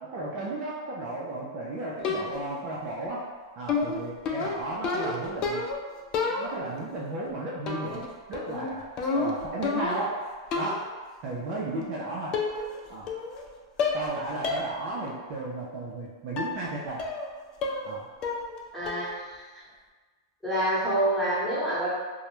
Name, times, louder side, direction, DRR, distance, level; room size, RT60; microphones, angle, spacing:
voice 1, 0.0-3.2 3.5-5.6 6.3-8.9 9.1-10.1 10.6-10.9 11.2-12.4 12.9-13.1 13.9-17.1 17.8-18.0, right 2 dB, 40° right, -5 dB, 0.4 m, -34 dB
sound 1, 2.0-2.6 3.7-5.8 6.1-6.8 7.7-8.1 8.3-10.1 10.5-10.9 11.8-11.9 12.3-12.8 13.1-13.5 13.8-14.1 14.4-14.7 15.1-15.2 16.4-16.6 17.0-17.3 17.6-17.9 18.2-18.6 18.9-19.2, left 4 dB, 35° left, 0.3 m, -30 dB
voice 2, 18.7-19.1 20.4-21.9, right 1 dB, 5° left, -11 dB, 1.0 m, -27 dB
2.2 x 2.0 x 2.9 m, 1.4 s
hypercardioid pair, 130°, 2 cm